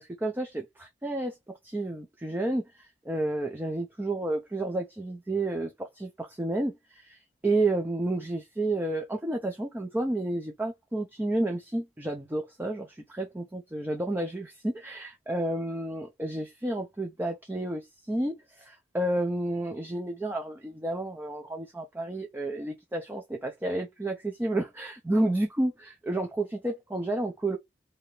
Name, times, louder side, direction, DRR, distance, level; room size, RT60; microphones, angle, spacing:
voice 1, 0.0-1.4 1.6-2.6 3.1-27.6, right 1 dB, 10° right, 0.4 m, -31 dB
2.8 x 2.5 x 3.1 m
head